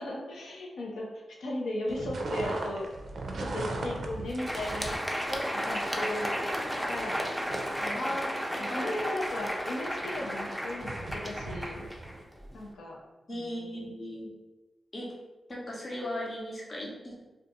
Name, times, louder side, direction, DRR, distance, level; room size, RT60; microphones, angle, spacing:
voice 1, 0.0-2.9 3.4-5.0 5.3-6.4 6.9-7.2 7.8-8.3 8.6-11.9 12.5-13.0 13.3-13.9, left 1 dB, 85° left, -2 dB, 0.5 m, -36 dB
sound 1, 1.9-12.2, right 2 dB, 70° right, 0.4 m, -40 dB
Crowd, 4.2-12.6, equal, ahead, 0.5 m, -34 dB
voice 2, 7.9-8.9 13.3-14.3 14.9-15.1 15.5-17.2, left 1 dB, 50° left, -3 dB, 0.7 m, -37 dB
2.5 x 2.3 x 2.7 m, 1.1 s
supercardioid pair, 40°, 0 cm